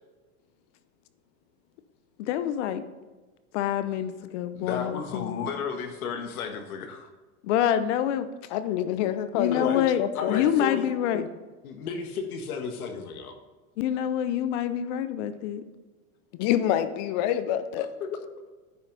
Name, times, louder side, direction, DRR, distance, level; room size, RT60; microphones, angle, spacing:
voice 1, 2.2-2.8 3.5-5.5 7.4-8.3 9.3-10.0 10.3-11.2 13.8-15.6, left 10 dB, 55° left, 12 dB, 0.8 m, -26 dB
voice 2, 4.5-7.1 9.5-9.8 10.1-10.9 11.6-13.3, left 6 dB, 80° left, 6 dB, 1.5 m, -33 dB
voice 3, 8.5-10.4 11.1-11.3 16.3-17.9, left 11 dB, 30° left, 12 dB, 0.4 m, -27 dB
9.8 x 5.7 x 4.0 m, 1.2 s
supercardioid pair, 140°, 43 cm